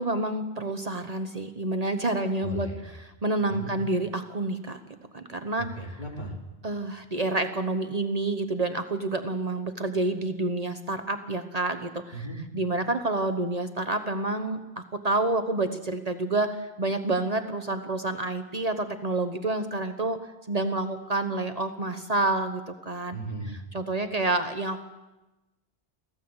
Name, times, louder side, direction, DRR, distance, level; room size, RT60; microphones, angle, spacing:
voice 1, 0.0-2.7 3.0-4.8 5.1-5.7 6.6-12.2 12.5-20.2 20.5-23.2 23.7-24.8, right 2 dB, 40° right, 8 dB, 1.2 m, -28 dB
voice 2, 2.4-2.8 3.5-3.7 5.6-6.3 12.1-12.4 23.1-23.6, right 2 dB, 50° left, -1 dB, 3.9 m, -36 dB
24.5 x 15.5 x 8.0 m, 1.1 s
omnidirectional pair, 1.0 m